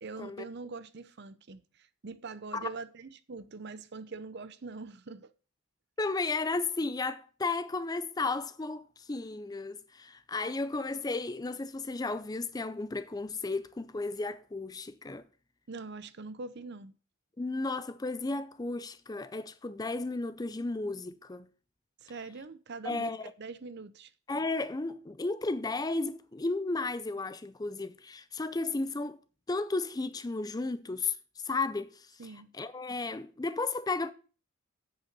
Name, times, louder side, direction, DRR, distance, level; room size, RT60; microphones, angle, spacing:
voice 1, 0.0-5.3 15.7-16.9 22.0-23.1 23.4-24.1 32.2-32.5, right 4 dB, 50° right, 0.6 m, -43 dB
voice 2, 6.0-15.2 17.4-21.5 22.8-23.3 24.3-29.2 29.5-31.2 31.4-34.1, left 3 dB, 15° left, 0.4 m, -34 dB
8.0 x 6.5 x 6.7 m
head